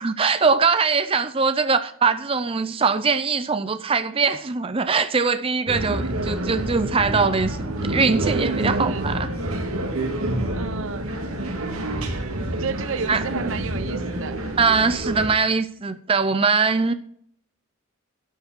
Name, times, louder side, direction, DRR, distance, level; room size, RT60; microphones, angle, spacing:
voice 1, 0.0-9.3 13.1-13.2 14.6-16.9, right 5 dB, 25° right, 0.5 m, -22 dB
sound 1, 5.7-15.3, right 1 dB, 85° right, 1.9 m, -27 dB
voice 2, 10.5-11.1 12.5-14.4, right 5 dB, 65° right, 0.6 m, -31 dB
11.5 x 7.0 x 6.0 m
head